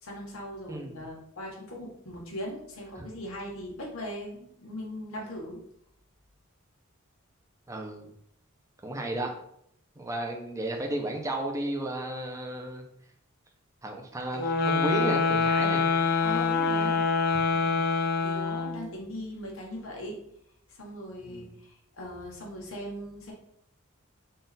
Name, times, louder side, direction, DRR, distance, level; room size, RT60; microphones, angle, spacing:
voice 1, 0.0-5.6 16.2-17.0 18.2-20.2 20.8-23.3, equal, 75° left, -2 dB, 1.1 m, -39 dB
voice 2, 0.7-1.0 3.0-3.1 7.7-8.1 8.8-9.3 10.0-12.9 13.8-15.9 16.8-16.9 17.5-17.8 21.3-21.5, right 1 dB, 15° right, 2 dB, 0.6 m, -33 dB
sound 1, 14.3-18.9, left 4 dB, 50° left, 0.5 m, -25 dB
3.8 x 2.4 x 4.0 m, 0.71 s
head